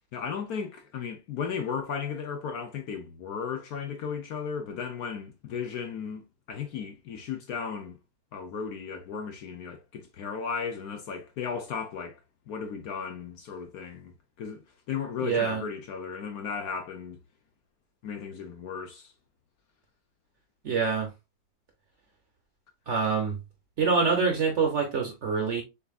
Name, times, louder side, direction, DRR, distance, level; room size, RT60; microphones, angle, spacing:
voice 1, 0.1-8.0 8.3-12.2 12.5-17.2 18.0-19.1, left 6 dB, 65° left, 1.0 m, -35 dB
voice 2, 15.2-15.6 20.6-21.1 22.9-23.4 23.8-25.6, right 5 dB, 55° right, 0.9 m, -25 dB
6.7 x 2.6 x 2.3 m
omnidirectional pair, 2.0 m